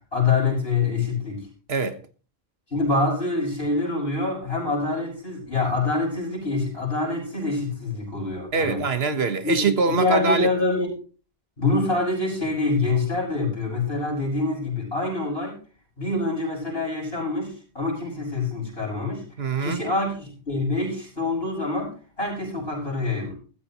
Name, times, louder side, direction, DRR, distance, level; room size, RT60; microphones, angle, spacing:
voice 1, 0.1-1.5 2.7-8.8 9.4-11.0 11.6-15.6 16.0-19.2 19.6-23.3, left 3 dB, 75° left, 7.3 m, -25 dB
voice 2, 1.7-2.0 8.5-10.5 19.4-19.8, right 4 dB, 80° right, 1.6 m, -23 dB
15.5 x 13.5 x 3.1 m
omnidirectional pair, 1.0 m